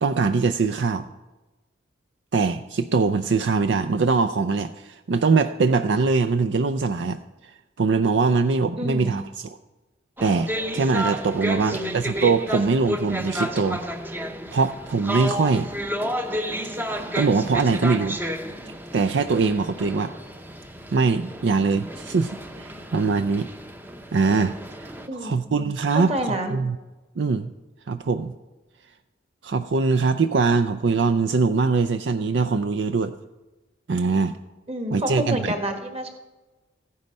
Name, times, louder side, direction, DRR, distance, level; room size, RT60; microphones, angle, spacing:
voice 1, 0.0-1.0 2.3-9.6 10.2-13.8 14.5-15.7 16.8-18.2 18.9-20.1 20.9-23.5 24.1-24.9 25.2-26.8 27.2-27.5 27.9-28.3 29.4-33.1 33.9-34.4 34.9-35.5, right 4 dB, 65° right, 10 dB, 0.5 m, -22 dB
voice 2, 8.8-9.2 11.4-12.0 25.1-25.4 25.9-26.5 34.7-36.1, equal, 35° right, 5 dB, 1.7 m, -29 dB
sound 1, 10.2-25.1, equal, 10° right, 0.8 m, -32 dB
15.0 x 9.5 x 5.3 m, 1.2 s
head